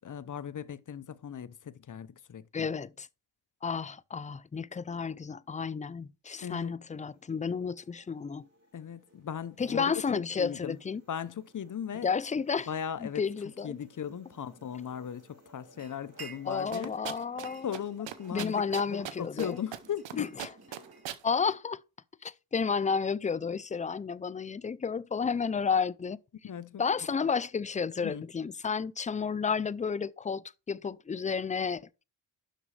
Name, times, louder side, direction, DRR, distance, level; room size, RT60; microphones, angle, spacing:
voice 1, 0.0-2.7 6.4-6.8 8.7-10.8 11.1-12.1 12.7-13.2 13.6-16.9 17.6-18.6 18.9-20.4 26.4-26.8 28.0-28.2, left 8 dB, 40° left, 0.7 m, -38 dB
voice 2, 2.5-3.1 3.6-8.5 9.6-11.0 12.0-12.7 13.0-13.8 16.5-17.7 18.3-19.6 20.2-20.5 21.2-21.8 22.2-26.2 26.8-32.0, left 5 dB, 20° left, 0.3 m, -31 dB
sound 1, 6.8-21.0, right 1 dB, 35° right, 4.2 m, -60 dB
sound 2, 15.8-16.8 17.2-18.4 18.8-21.5, right 5 dB, 55° right, 1.8 m, -52 dB
sound 3, 16.7-17.5 17.7-17.8 18.1-19.5 19.7-20.1 20.4-21.2, right 10 dB, 70° right, 0.9 m, -38 dB
10.0 x 6.1 x 3.2 m
cardioid pair, 60°, 46 cm